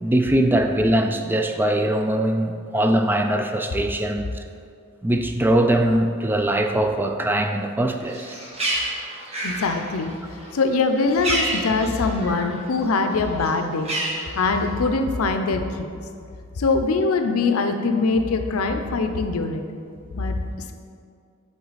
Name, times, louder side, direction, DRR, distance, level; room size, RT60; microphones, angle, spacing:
voice 1, 0.0-4.3 5.0-8.3, right 1 dB, 10° right, 5 dB, 0.3 m, -21 dB
Bird, 8.0-12.6 12.9-14.8, right 1 dB, 30° right, 1.2 m, -29 dB
voice 2, 9.4-10.1 10.5-13.9 14.4-15.9 16.6-19.6 20.1-20.4, left 3 dB, 85° left, 6 dB, 0.5 m, -22 dB
7.7 x 3.8 x 4.1 m, 2.3 s
head